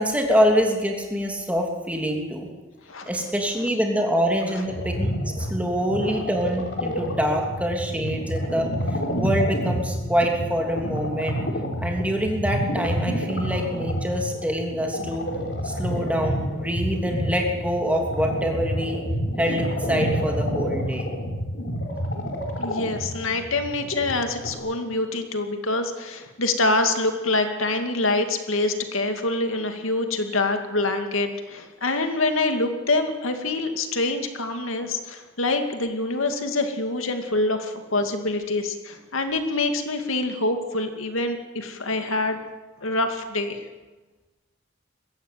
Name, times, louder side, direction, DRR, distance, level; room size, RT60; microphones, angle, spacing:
voice 1, 0.0-2.5 3.1-11.4 11.8-15.3 15.6-19.0 19.4-21.1, equal, 5° right, 1 dB, 2.9 m, -25 dB
sound 1, 4.7-24.5, equal, 60° left, 3.7 m, -29 dB
voice 2, 22.6-42.4 42.8-43.6, left 2 dB, 80° left, 6 dB, 2.4 m, -25 dB
22.0 x 15.5 x 9.3 m, 1.2 s
head